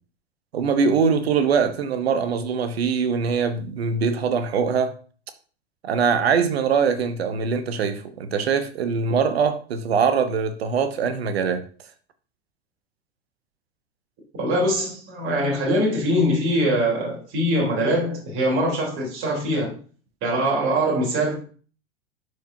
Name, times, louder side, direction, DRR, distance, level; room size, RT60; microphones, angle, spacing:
voice 1, 0.5-4.9 5.8-11.6, right 6 dB, 65° right, 1.0 m, -22 dB
voice 2, 14.3-19.7 20.2-21.3, equal, 40° right, 3.4 m, -22 dB
11.5 x 4.8 x 2.7 m
figure-of-eight pair, 85°, 33 cm